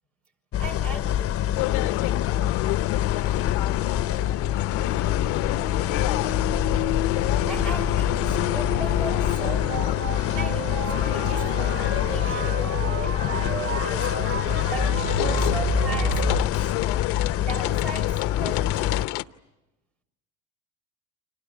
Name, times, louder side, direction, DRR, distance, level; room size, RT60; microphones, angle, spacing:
sound 1, 0.5-19.1, left 12 dB, 40° left, 0.8 m, -26 dB
voice 1, 0.6-1.6 7.5-10.0 10.3-14.3 14.7-16.8 17.4-19.0, right 2 dB, 80° right, 5.4 m, -38 dB
sound 2, 1.6-19.2, left 18 dB, 70° left, 0.8 m, -30 dB
sound 3, 3.1-16.4, right 5 dB, 40° right, 1.3 m, -32 dB
29.5 x 26.5 x 6.3 m
hypercardioid pair, 75°, 34 cm